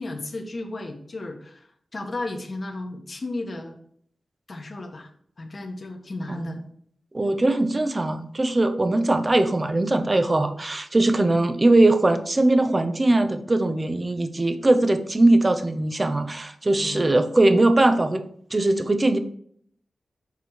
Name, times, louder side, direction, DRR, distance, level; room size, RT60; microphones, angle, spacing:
voice 1, 0.0-3.8 4.5-5.1 5.4-6.6 16.8-17.0, left 2 dB, 45° left, 3 dB, 1.3 m, -34 dB
voice 2, 7.1-18.2 18.5-19.2, right 2 dB, 30° right, 9 dB, 0.7 m, -20 dB
6.7 x 4.6 x 4.8 m, 0.64 s
wide cardioid pair, 95°, 0 cm